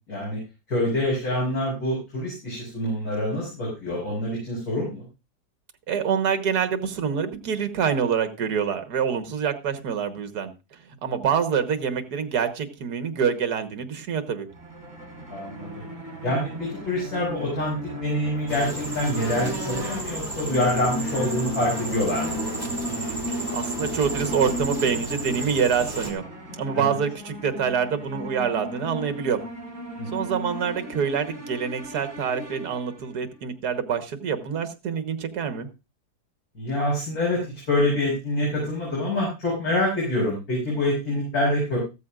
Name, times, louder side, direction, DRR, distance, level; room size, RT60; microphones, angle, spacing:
voice 1, 0.1-0.4 0.7-5.0 15.3-15.7 16.2-22.4 26.7-26.9 30.0-30.3 36.6-37.4 37.7-41.8, left 1 dB, 60° left, -4 dB, 6.2 m, -26 dB
voice 2, 5.9-10.5 11.0-14.5 22.8-26.2 26.6-29.4 30.1-35.7, right 7 dB, 70° right, 8 dB, 1.8 m, -26 dB
sound 1, 14.5-33.3, equal, 40° right, 4.3 m, -35 dB
sound 2, 18.5-26.1, right 2 dB, 15° right, 2.6 m, -33 dB
14.5 x 13.5 x 2.5 m, 0.27 s
omnidirectional pair, 1.8 m